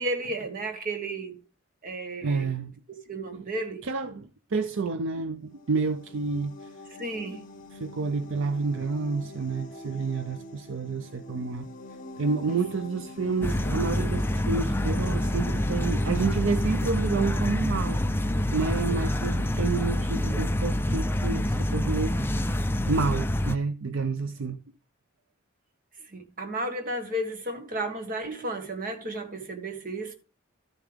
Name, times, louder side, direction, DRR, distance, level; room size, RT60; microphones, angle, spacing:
voice 1, 0.0-1.4 1.8-2.5 2.9-3.8 6.9-7.4 12.4-12.6 26.1-30.1, right 1 dB, 45° right, 1.6 m, -33 dB
voice 2, 2.2-2.7 3.3-3.4 3.8-6.7 7.7-11.7 12.2-22.2 22.9-24.6, right 4 dB, 65° right, 0.5 m, -29 dB
sound 1, 5.4-19.0, left 2 dB, 40° left, 2.3 m, -45 dB
sound 2, 13.4-23.6, left 1 dB, 10° left, 0.4 m, -27 dB
12.5 x 7.1 x 3.5 m
head